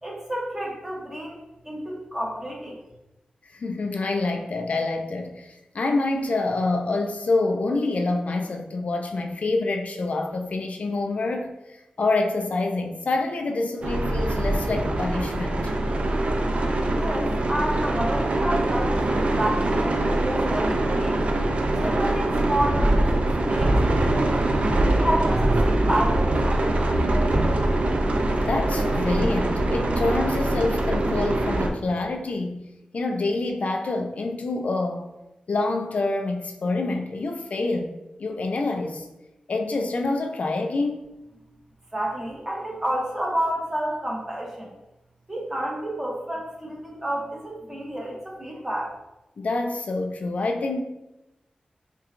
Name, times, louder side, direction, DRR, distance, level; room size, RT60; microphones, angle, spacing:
voice 1, 0.0-1.4 1.6-2.8 16.9-21.2 21.7-24.4 24.8-27.6 41.9-44.7 45.3-48.9, right 1 dB, 15° right, -3 dB, 1.1 m, -30 dB
voice 2, 3.5-15.7 28.4-32.6 32.9-35.1 35.5-37.9 38.2-39.1 39.5-41.0 49.4-50.8, left 2 dB, 60° left, 4 dB, 0.3 m, -26 dB
sound 1, 13.8-31.7, right 1 dB, 55° right, 0.4 m, -23 dB
5.6 x 2.2 x 2.5 m, 0.95 s
wide cardioid pair, 90°, 3 cm